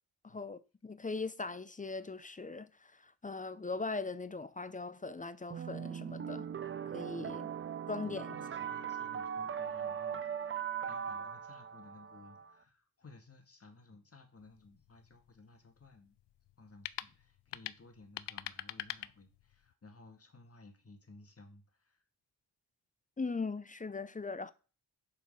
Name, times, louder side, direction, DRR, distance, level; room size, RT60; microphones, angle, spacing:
voice 1, 0.2-6.5 6.9-7.5 7.9-8.3 23.2-24.5, left 3 dB, 20° left, 0.6 m, -40 dB
sound 1, 5.5-12.5, right 8 dB, 30° right, 0.5 m, -39 dB
voice 2, 7.2-7.6 8.0-16.2 16.6-22.0, left 3 dB, 35° left, 1.9 m, -58 dB
sound 2, 14.4-19.7, left 14 dB, 90° left, 0.5 m, -46 dB
7.3 x 4.5 x 5.4 m
cardioid pair, 90°, 40 cm